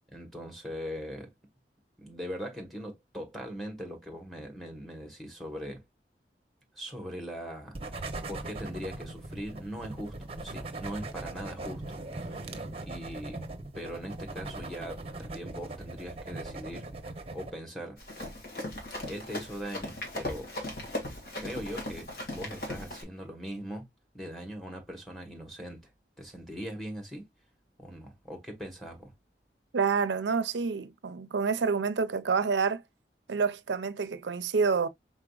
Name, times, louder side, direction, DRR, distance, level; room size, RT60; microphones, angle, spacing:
voice 1, 0.1-1.3 2.0-5.8 6.7-11.8 12.2-13.4 13.7-16.9 17.3-18.0 19.0-20.5 21.4-23.8 24.1-25.9 26.2-27.2 27.8-29.1, equal, ahead, 1.4 m, -40 dB
sound 1, 7.7-17.5, right 2 dB, 35° right, 0.7 m, -40 dB
Run, 18.0-23.0, left 1 dB, 55° left, 2.1 m, -38 dB
voice 2, 29.7-32.8 33.3-34.9, right 5 dB, 85° right, 0.5 m, -28 dB
4.9 x 4.0 x 2.3 m
head